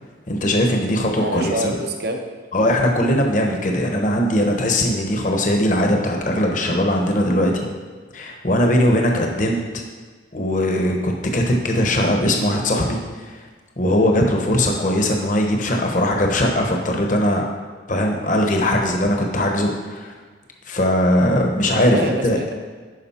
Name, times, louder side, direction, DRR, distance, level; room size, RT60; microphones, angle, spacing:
voice 1, 0.3-1.7 2.5-7.7 8.1-9.6 10.3-13.0 13.3-13.4 13.8-17.4 17.9-20.1 20.7-22.4, left 1 dB, 40° left, 2 dB, 0.9 m, -20 dB
voice 2, 1.2-2.2 21.7-22.5, right 1 dB, 55° right, 4 dB, 0.8 m, -26 dB
11.0 x 5.1 x 4.3 m, 1.5 s
head